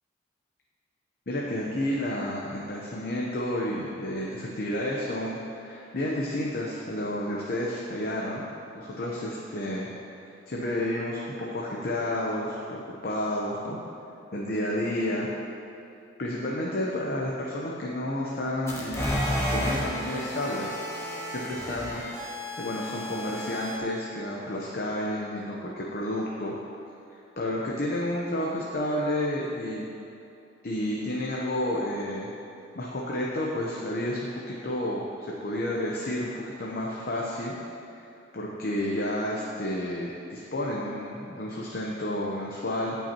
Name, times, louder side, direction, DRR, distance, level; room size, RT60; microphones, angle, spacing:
voice 1, 1.3-8.4 8.7-9.9 10.5-13.8 14.3-15.3 16.2-20.7 21.3-22.0 22.3-26.5 27.1-29.9 30.6-32.3 32.7-37.6 38.0-38.1 38.3-42.9, left 1 dB, 55° left, -3 dB, 0.8 m, -31 dB
sound 1, 18.7-23.8, equal, 15° left, 1.4 m, -32 dB
16.0 x 5.7 x 2.9 m, 2.8 s
head